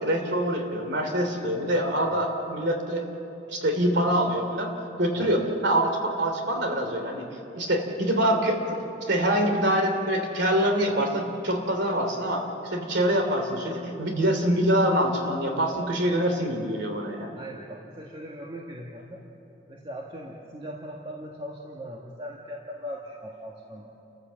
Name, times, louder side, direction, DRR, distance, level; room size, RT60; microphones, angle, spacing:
voice 1, 0.0-3.0 3.5-4.7 5.0-7.2 7.5-8.8 9.1-17.3, right 1 dB, 65° right, 4 dB, 2.9 m, -25 dB
voice 2, 17.4-19.2 19.7-23.9, equal, 30° right, -2 dB, 1.6 m, -39 dB
30.0 x 14.0 x 7.5 m, 3.0 s
head